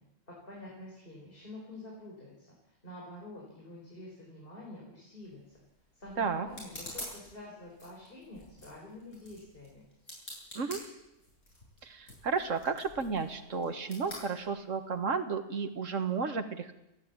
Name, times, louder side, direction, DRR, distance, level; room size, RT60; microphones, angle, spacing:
voice 1, 0.3-5.4 5.9-9.9, left 1 dB, 45° left, -4 dB, 5.3 m, -48 dB
sound 1, 5.2-15.0, left 1 dB, 90° left, 8.3 m, -49 dB
voice 2, 11.8-16.7, right 5 dB, 85° right, 8 dB, 1.9 m, -33 dB
29.0 x 11.0 x 8.8 m, 0.89 s
omnidirectional pair, 1.3 m